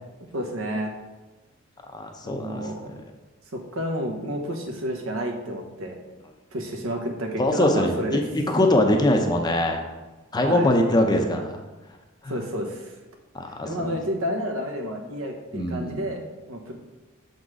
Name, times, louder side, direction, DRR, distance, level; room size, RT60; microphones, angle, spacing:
voice 1, 0.3-0.9 2.2-3.0 3.5-6.0 6.5-8.2 10.4-10.7 12.3-12.9 13.6-16.7, equal, 75° right, 2 dB, 1.0 m, -30 dB
voice 2, 1.9-2.7 7.4-8.2 8.5-9.8 10.3-11.6 12.2-12.3 13.3-14.0 15.5-16.0, left 1 dB, 20° left, 3 dB, 0.6 m, -22 dB
6.5 x 4.0 x 4.8 m, 1.1 s
head